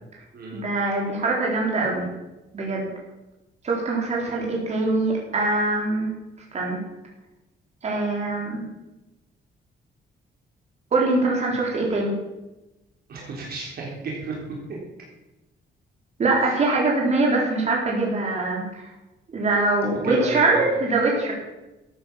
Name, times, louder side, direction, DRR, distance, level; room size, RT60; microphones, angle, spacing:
voice 1, 0.5-2.0 2.5-2.9 3.6-6.1 6.5-6.8 7.8-8.7 10.9-12.2 16.2-18.9 19.3-21.3, right 2 dB, 35° right, -2 dB, 4.0 m, -23 dB
voice 2, 13.1-14.4 16.4-16.6 19.8-20.6, right 3 dB, 55° right, -3 dB, 3.5 m, -32 dB
13.5 x 9.5 x 7.2 m, 1.0 s
cardioid pair, 175°, 19 cm